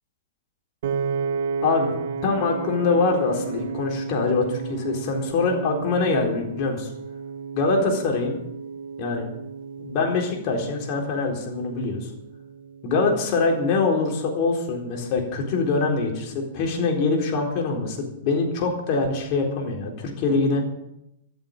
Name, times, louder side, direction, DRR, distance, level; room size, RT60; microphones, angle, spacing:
Piano, 0.8-13.1, right 5 dB, 65° right, 0.9 m, -33 dB
voice 1, 1.6-6.9 7.5-8.4 9.0-9.2 9.8-12.1 12.8-18.0 18.2-20.7, left 3 dB, 45° left, 0 dB, 4.1 m, -24 dB
13.0 x 9.3 x 9.0 m, 0.81 s
hypercardioid pair, 115°, 0 cm